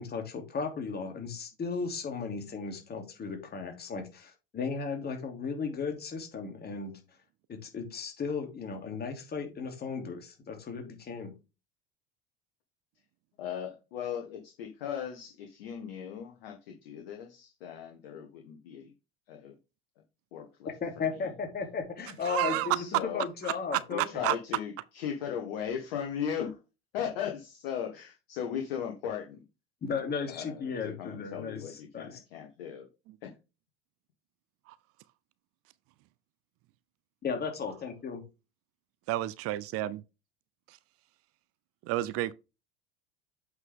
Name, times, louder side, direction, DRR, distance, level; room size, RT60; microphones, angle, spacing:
voice 1, 0.0-7.0 7.5-11.3 20.8-24.3 29.8-32.2 37.2-38.2, left 5 dB, 30° left, 3.0 m, -35 dB
voice 2, 13.4-18.9 19.3-19.6 20.3-20.7 22.4-23.2 23.9-26.6 26.9-29.4 30.3-32.9 33.2-33.3, left 8 dB, 65° left, 1.6 m, -37 dB
voice 3, 22.3-22.7 23.7-23.8 24.2-24.4 33.1-33.2 34.7-34.8 39.1-40.0 41.8-42.3, right 16 dB, 50° right, 0.6 m, -30 dB
8.1 x 5.4 x 3.7 m
hypercardioid pair, 75°, 30 cm